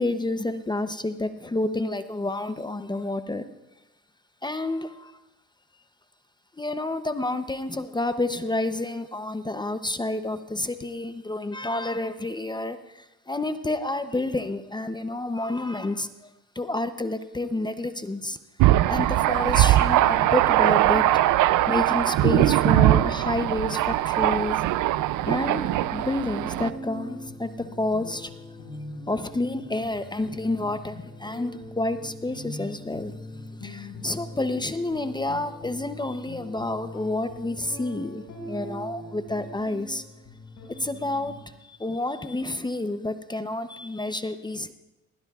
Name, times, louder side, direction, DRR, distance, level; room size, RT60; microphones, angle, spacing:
voice 1, 0.0-3.4 4.4-5.1 6.6-16.3 16.6-18.4 18.9-21.2 21.7-24.6 25.3-25.6 25.9-28.3 29.1-33.1 33.6-40.0 40.7-44.7, left 2 dB, 15° left, 10 dB, 0.7 m, -29 dB
Thunder, 18.6-26.7, right 14 dB, 80° right, 0.5 m, -21 dB
sound 1, 24.7-41.4, left 1 dB, 85° left, 5.0 m, -41 dB
20.0 x 19.0 x 2.4 m, 0.98 s
cardioid pair, 90°, 30 cm